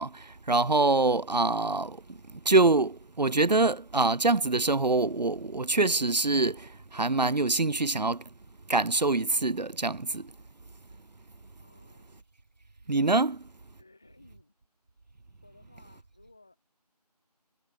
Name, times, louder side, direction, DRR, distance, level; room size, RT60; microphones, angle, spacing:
voice 1, 0.0-2.2 2.4-8.2 8.7-10.3 12.9-13.4, right 3 dB, 85° right, 0.8 m, -25 dB
voice 2, 11.6-12.3 13.2-13.4 13.8-14.6 15.4-16.6, left 2 dB, 5° left, 4.8 m, -59 dB
figure-of-eight pair, 180°, 21 cm